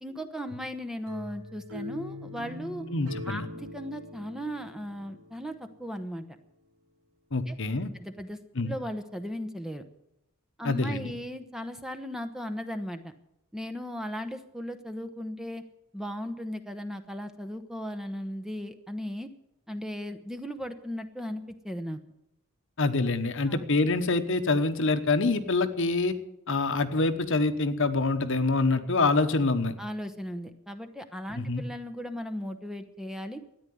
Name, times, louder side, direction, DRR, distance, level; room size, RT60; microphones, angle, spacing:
voice 1, 0.0-2.9 3.3-6.2 7.5-7.6 8.0-8.4 8.6-9.8 10.6-13.1 13.5-15.6 15.9-19.3 19.7-22.0 23.5-23.6 29.8-33.4, equal, ahead, 6 dB, 0.9 m, -37 dB
sound 1, 1.1-6.0, left 1 dB, 80° right, 2.5 m, -42 dB
voice 2, 2.9-3.5 7.3-7.9 8.5-8.7 10.6-11.1 22.8-26.1 26.5-29.7 31.3-31.6, left 3 dB, 60° left, 9 dB, 1.1 m, -26 dB
13.5 x 9.9 x 9.3 m, 0.83 s
head